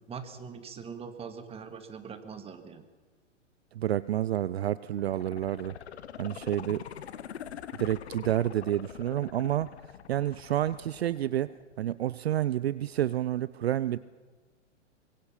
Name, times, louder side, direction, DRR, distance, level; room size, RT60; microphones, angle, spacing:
voice 1, 0.1-2.9, right 6 dB, 15° right, 8 dB, 2.0 m, -42 dB
voice 2, 3.7-5.8 6.2-6.8 7.8-9.7 10.1-11.5 11.8-14.0, right 12 dB, 55° right, 18 dB, 0.6 m, -29 dB
sound 1, 4.9-11.9 12.3-12.4, left 9 dB, 60° left, 1.2 m, -44 dB
24.5 x 22.0 x 5.8 m, 1.4 s
figure-of-eight pair, 110°, 37 cm